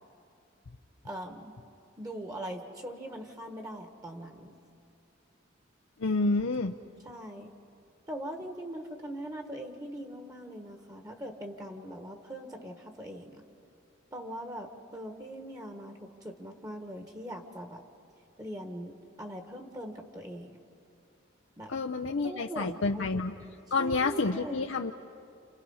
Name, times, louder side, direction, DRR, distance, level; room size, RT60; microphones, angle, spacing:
voice 1, 1.0-1.5 2.0-4.5 7.0-7.5 8.1-13.4 14.1-17.8 18.4-20.6 21.6-21.7 22.2-23.2 23.8-24.6, right 1 dB, 20° right, 5 dB, 1.4 m, -41 dB
voice 2, 6.0-6.7 21.7-23.3 23.7-24.9, left 3 dB, 80° left, 4 dB, 0.7 m, -29 dB
30.0 x 28.5 x 5.6 m, 2.5 s
head